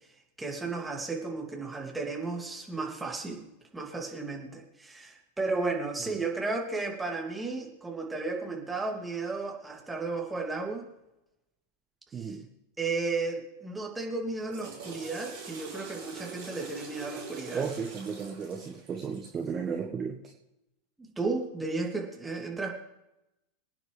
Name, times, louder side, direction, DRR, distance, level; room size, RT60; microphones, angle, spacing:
voice 1, 0.4-3.4 3.7-10.9 12.1-12.4 12.8-17.7 21.0-22.7, right 3 dB, 10° right, 0 dB, 2.7 m, -34 dB
Water / Toilet flush, 14.2-19.5, right 4 dB, 55° right, 4.9 m, -44 dB
voice 2, 17.5-20.2, right 6 dB, 25° right, 2 dB, 1.4 m, -34 dB
25.0 x 9.6 x 3.4 m, 0.91 s
figure-of-eight pair, 90°, 0 cm